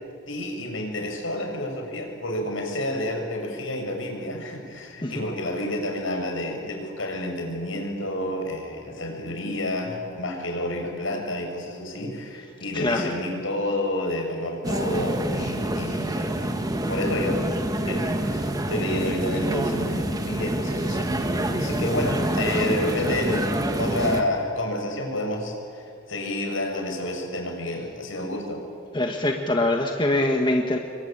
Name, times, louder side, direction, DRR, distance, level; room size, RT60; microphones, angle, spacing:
voice 1, 0.3-16.6 16.9-17.4 17.9-23.5 23.8-25.5 26.1-28.6, left 1 dB, 75° left, 2 dB, 6.4 m, -29 dB
voice 2, 12.7-13.2 28.9-30.8, left 1 dB, 25° left, 2 dB, 1.7 m, -23 dB
sound 1, 14.6-24.2, right 1 dB, 20° right, 1.6 m, -27 dB
28.5 x 22.5 x 9.0 m, 2.3 s
head